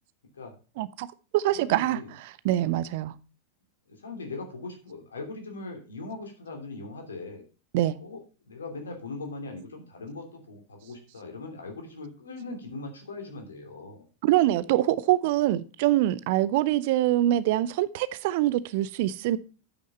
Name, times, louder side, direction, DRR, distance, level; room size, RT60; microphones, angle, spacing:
voice 1, 0.8-1.1 1.3-2.0 2.4-3.1 7.7-8.0 14.2-19.4, right 14 dB, 50° right, 0.6 m, -24 dB
voice 2, 1.5-2.1 3.9-7.4 8.0-14.1, left 3 dB, 70° left, 2.8 m, -40 dB
8.9 x 6.4 x 5.4 m
figure-of-eight pair, 90°, 0 cm